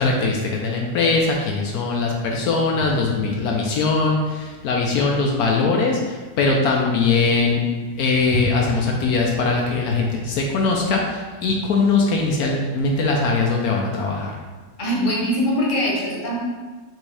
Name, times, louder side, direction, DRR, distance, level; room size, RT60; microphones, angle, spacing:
voice 1, 0.0-7.6 8.0-14.4, left 3 dB, 75° left, -1 dB, 1.1 m, -21 dB
voice 2, 14.8-16.4, equal, 35° left, -4 dB, 1.1 m, -22 dB
6.0 x 2.7 x 3.2 m, 1.3 s
omnidirectional pair, 1.6 m